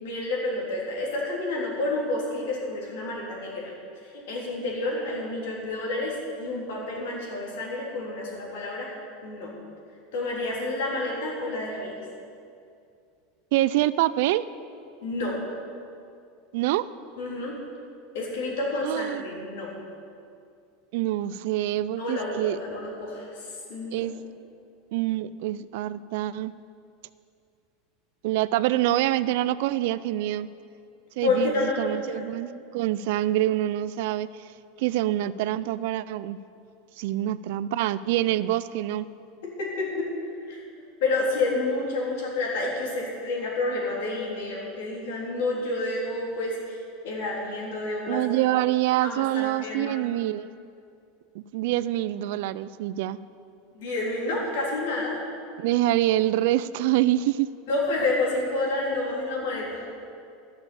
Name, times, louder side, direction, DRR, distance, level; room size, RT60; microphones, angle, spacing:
voice 1, 0.0-3.7 4.3-8.9 9.2-9.5 10.1-12.0 15.0-15.3 17.2-17.5 18.1-19.7 22.0-24.1 31.2-32.2 39.4-40.1 40.5-40.6 41.0-46.8 47.0-48.2 49.0-49.9 53.7-55.2 57.7-59.9, left 2 dB, 70° left, -3 dB, 3.5 m, -29 dB
voice 2, 13.5-14.4 16.5-16.8 18.8-19.2 20.9-22.6 23.9-24.1 24.9-26.5 28.2-30.5 31.2-34.3 34.8-36.4 37.0-39.1 48.1-50.5 51.3-53.2 55.6-57.5, right 14 dB, 55° right, 16 dB, 0.3 m, -25 dB
12.5 x 6.8 x 7.0 m, 2.4 s
supercardioid pair, 180°, 0 cm